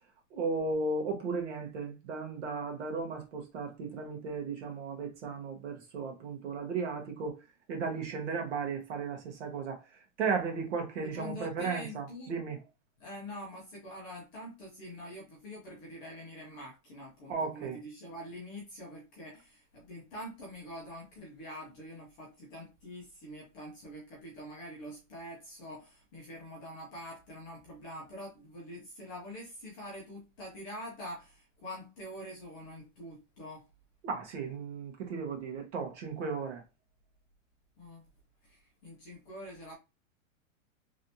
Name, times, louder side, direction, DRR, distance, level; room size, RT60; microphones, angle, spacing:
voice 1, 0.3-7.4 7.7-12.6 17.3-17.8 34.0-36.6, right 4 dB, 55° right, 1.4 m, -35 dB
voice 2, 11.1-12.3 13.0-33.7 37.8-38.0 38.4-39.7, equal, 15° left, 0.5 m, -45 dB
3.2 x 2.9 x 2.6 m
supercardioid pair, 165°, 41 cm